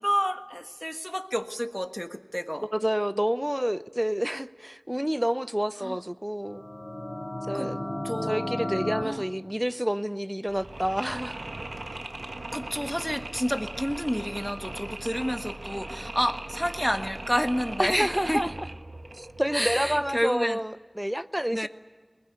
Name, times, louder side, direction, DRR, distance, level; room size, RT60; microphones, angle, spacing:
voice 1, 0.0-2.7 5.8-6.0 7.5-7.7 8.0-8.4 9.0-9.2 12.5-18.4 19.5-20.6 21.5-21.7, equal, 5° left, 1.4 m, -29 dB
voice 2, 2.7-6.7 7.5-7.8 8.2-11.4 17.8-18.5 19.2-21.7, equal, 10° right, 0.6 m, -28 dB
sound 1, 6.5-9.0, left 1 dB, 30° left, 2.9 m, -33 dB
Mechanisms, 10.5-20.2, right 2 dB, 80° right, 1.3 m, -39 dB
20.5 x 20.0 x 9.6 m
wide cardioid pair, 45°, 0 cm